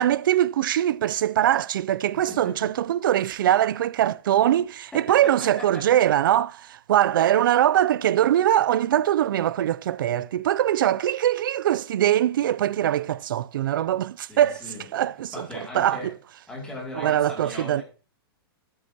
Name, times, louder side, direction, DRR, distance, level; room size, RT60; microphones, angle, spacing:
voice 1, 0.0-14.6 14.9-16.1 16.9-17.8, right 11 dB, 55° right, 0.4 m, -22 dB
voice 2, 2.3-2.7 5.1-6.0 14.3-14.8 15.3-16.1 16.5-17.8, left 2 dB, 5° left, 2.5 m, -38 dB
11.0 x 9.4 x 2.8 m
hypercardioid pair, 180°, 13 cm